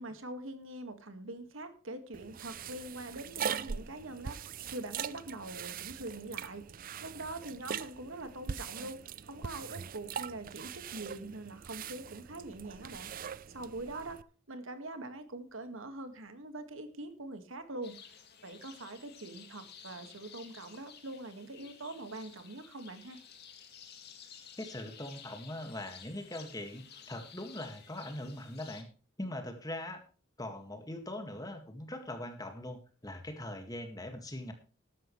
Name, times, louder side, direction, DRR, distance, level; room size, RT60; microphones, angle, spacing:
voice 1, 0.0-14.2 14.5-18.0 18.4-23.2, right 2 dB, 70° right, 9 dB, 1.9 m, -44 dB
sound 1, 2.1-14.2, right 7 dB, 40° right, 0.5 m, -42 dB
sound 2, 17.8-28.8, left 7 dB, 50° left, 2.2 m, -53 dB
voice 2, 24.6-28.9 29.2-30.0 30.4-34.5, left 1 dB, 20° left, 6 dB, 1.9 m, -41 dB
14.0 x 12.0 x 3.2 m, 0.37 s
head